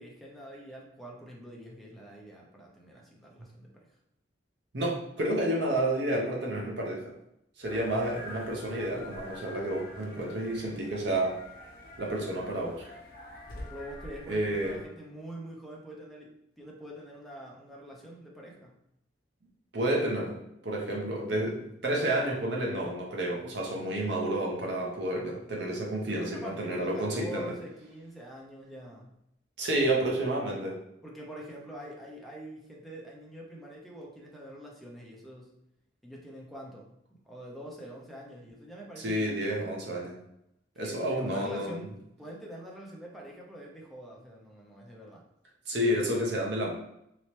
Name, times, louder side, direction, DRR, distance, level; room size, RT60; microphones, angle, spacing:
voice 1, 0.0-4.0 13.7-18.7 26.0-29.1 31.0-35.5 36.0-39.7 40.7-41.9 42.2-45.2, right 1 dB, ahead, -3 dB, 0.5 m, -45 dB
voice 2, 4.7-7.1 7.6-11.4 12.0-12.9 14.3-14.7 19.7-20.4 20.6-27.5 29.6-30.8 39.0-40.2 40.8-41.8 45.7-46.7, right 1 dB, 65° right, -1 dB, 0.8 m, -30 dB
sound 1, 7.6-14.9, left 1 dB, 50° left, 0.8 m, -47 dB
3.1 x 2.9 x 3.1 m, 0.79 s
head